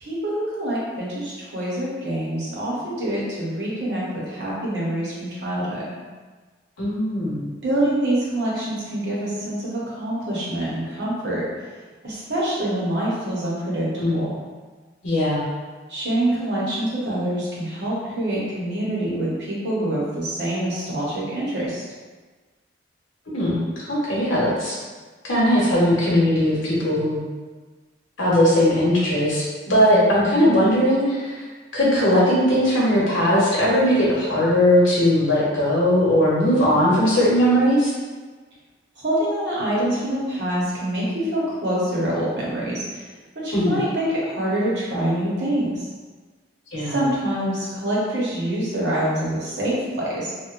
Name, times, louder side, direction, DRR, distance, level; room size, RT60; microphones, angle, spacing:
voice 1, 0.0-5.9 7.6-11.4 12.0-13.9 14.1-14.3 15.9-21.8 29.7-30.5 39.0-43.1 43.4-45.9 46.9-50.3, right 1 dB, 60° right, -6 dB, 0.8 m, -25 dB
voice 2, 6.8-7.5 14.0-14.2 15.0-15.4 23.3-24.7 25.2-27.2 28.2-29.4 29.7-31.4 31.7-37.9 43.5-43.8 46.7-47.1, equal, 85° left, -6 dB, 0.9 m, -19 dB
2.8 x 2.2 x 2.4 m, 1.4 s
head